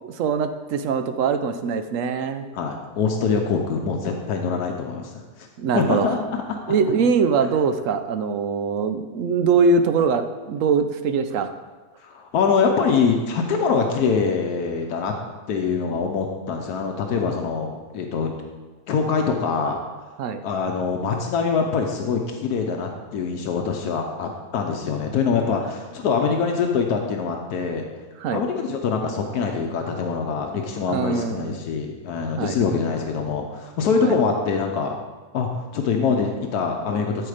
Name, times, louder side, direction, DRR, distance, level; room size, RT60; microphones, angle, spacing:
voice 1, 0.0-2.5 5.6-6.1 6.7-11.5 20.2-20.4 28.2-28.4 30.9-31.6 32.4-32.6 34.0-34.2, right 5 dB, 65° right, 9 dB, 0.9 m, -22 dB
voice 2, 2.5-5.5 5.7-6.8 12.0-15.1 15.5-17.7 17.9-18.3 18.9-19.8 20.4-27.8 28.3-34.9 35.3-37.3, left 5 dB, 85° left, 2 dB, 1.3 m, -24 dB
12.5 x 4.6 x 4.9 m, 1.3 s
omnidirectional pair, 1.6 m